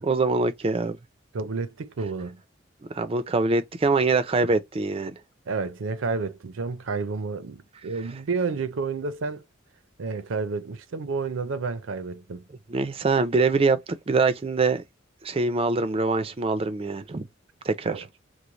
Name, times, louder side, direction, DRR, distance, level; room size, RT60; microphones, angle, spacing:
voice 1, 0.0-1.0 2.9-5.1 12.7-14.8 15.2-17.3 17.6-18.0, right 3 dB, 30° right, 0.4 m, -24 dB
voice 2, 1.3-2.4 5.5-9.4 10.0-12.4 16.6-16.7 17.9-18.0, right 4 dB, 80° right, 0.5 m, -30 dB
3.1 x 2.0 x 3.9 m
head